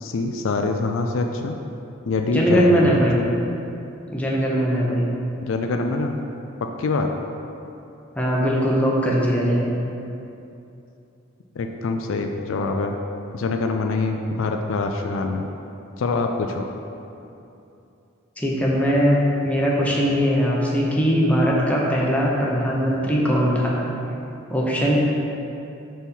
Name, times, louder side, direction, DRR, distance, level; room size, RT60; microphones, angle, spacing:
voice 1, 0.0-1.6 2.1-2.9 5.4-6.2 6.6-7.1 11.6-13.0 13.3-15.5 16.0-16.7, left 3 dB, 65° left, 4 dB, 0.4 m, -24 dB
voice 2, 2.3-3.2 4.1-5.1 8.1-9.7 18.4-23.7 24.5-25.0, equal, 5° left, -4 dB, 0.8 m, -20 dB
4.5 x 4.2 x 5.3 m, 2.8 s
head